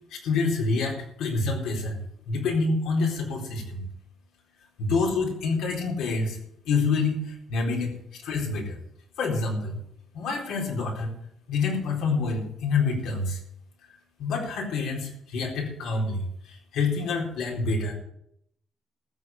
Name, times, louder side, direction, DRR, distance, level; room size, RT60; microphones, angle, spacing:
voice 1, 0.1-2.0 2.3-3.8 4.8-6.4 6.7-7.9 8.2-8.8 9.2-9.8 10.1-11.1 11.5-13.4 14.2-17.9, left 4 dB, 85° left, 0 dB, 4.3 m, -27 dB
14.0 x 7.4 x 8.3 m, 0.73 s
cardioid pair, 90°, 0 cm